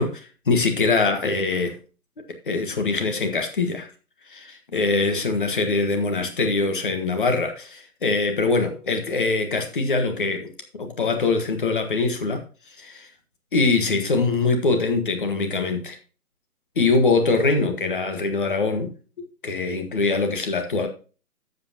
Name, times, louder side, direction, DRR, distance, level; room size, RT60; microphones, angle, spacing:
voice 1, 0.0-1.8 2.4-3.9 4.3-12.4 12.8-13.1 13.5-16.0 16.7-18.9 19.2-20.9, left 3 dB, 35° left, 1.6 m, -23 dB
11.0 x 8.1 x 2.9 m
hypercardioid pair, 175°, 45 cm